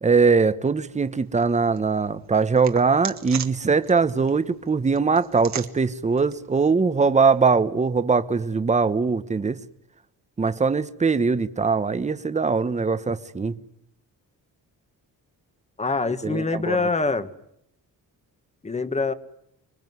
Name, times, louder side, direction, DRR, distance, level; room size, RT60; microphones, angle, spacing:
voice 1, 0.0-9.6 10.4-13.6 16.2-16.8, right 4 dB, 20° right, 1.1 m, -21 dB
sound 1, 0.8-7.6, right 8 dB, 50° right, 1.8 m, -40 dB
voice 2, 15.8-17.3 18.6-19.1, left 3 dB, 20° left, 1.5 m, -24 dB
26.0 x 22.5 x 9.5 m
cardioid pair, 135°, 34 cm